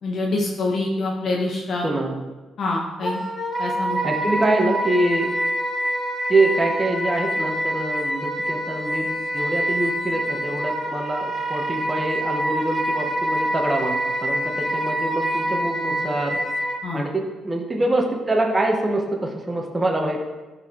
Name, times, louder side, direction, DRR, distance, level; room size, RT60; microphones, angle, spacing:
voice 1, 0.0-1.9 2.6-3.2 3.6-4.0 16.8-17.0, left 2 dB, 55° left, -2 dB, 1.2 m, -25 dB
voice 2, 1.8-2.2 4.0-5.3 6.3-16.4 16.9-20.2, right 2 dB, 20° right, 1 dB, 1.7 m, -25 dB
Wind instrument woodwind instrument, 3.0-16.8, right 1 dB, 10° left, 1.9 m, -26 dB
13.5 x 4.8 x 4.9 m, 1.2 s
cardioid pair, 90°, 0 cm